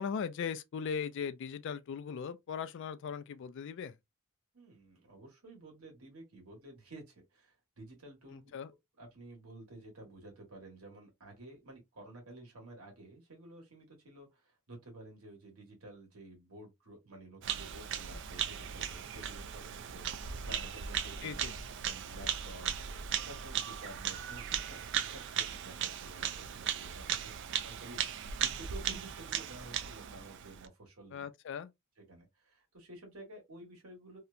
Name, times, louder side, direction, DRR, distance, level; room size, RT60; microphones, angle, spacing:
voice 1, 0.0-4.0 8.3-8.7 21.2-21.5 31.1-31.7, left 6 dB, 60° left, 0.3 m, -39 dB
voice 2, 4.5-8.5 9.0-21.4 21.8-22.7 23.2-31.3 32.1-34.2, right 2 dB, 85° right, 1.3 m, -52 dB
Bird vocalization bird call bird song, 17.4-30.7, right 9 dB, 55° right, 0.3 m, -37 dB
2.8 x 2.1 x 2.4 m
head